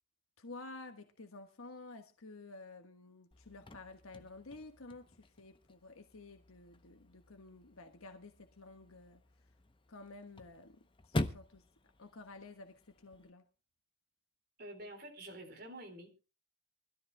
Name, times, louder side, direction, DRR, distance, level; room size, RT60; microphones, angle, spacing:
voice 1, 0.4-9.2 9.9-11.6 12.0-13.4, left 3 dB, 90° left, 1.4 m, -52 dB
Chirp tweet / Car / Slam, 3.3-13.3, left 2 dB, 25° left, 0.7 m, -45 dB
voice 2, 14.6-16.2, right 1 dB, 45° right, 3.9 m, -48 dB
24.0 x 13.5 x 2.2 m
head